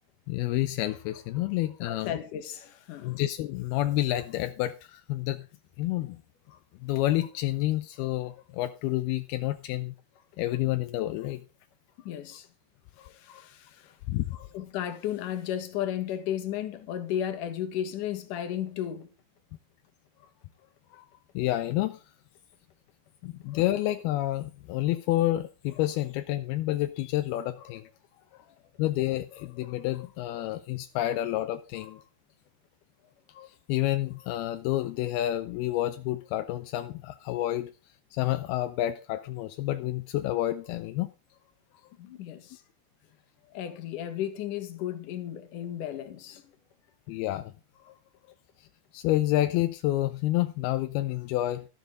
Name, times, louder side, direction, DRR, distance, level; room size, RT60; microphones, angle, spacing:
voice 1, 0.3-2.1 3.0-5.5 5.8-6.2 6.5-9.9 10.4-11.4 13.0-13.5 14.1-14.5 20.9-21.1 21.3-22.0 23.2-27.9 28.3-28.4 28.8-32.0 33.3-37.7 38.1-41.1 47.1-47.5 47.8-48.0 48.6-48.7 48.9-51.7, left 15 dB, 85° left, 2.2 m, -29 dB
voice 2, 1.8-3.2 12.0-12.5 13.1-14.0 14.5-19.1 28.5-28.6 42.0-42.6 43.5-46.5, left 10 dB, 60° left, 2.5 m, -34 dB
12.5 x 12.0 x 3.8 m
omnidirectional pair, 5.2 m